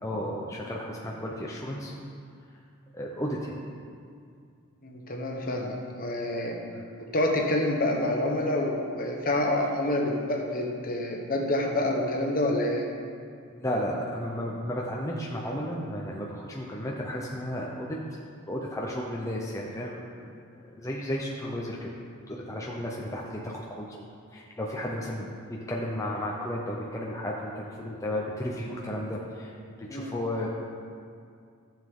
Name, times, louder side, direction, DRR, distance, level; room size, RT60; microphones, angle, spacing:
voice 1, 0.0-1.9 2.9-3.6 6.7-6.8 13.5-18.2 18.5-21.9 22.3-30.5, left 1 dB, 15° left, -3 dB, 0.7 m, -34 dB
voice 2, 4.8-6.6 7.1-12.9 29.9-30.1, left 1 dB, 40° left, 0 dB, 1.3 m, -27 dB
14.5 x 7.4 x 3.8 m, 2.3 s
head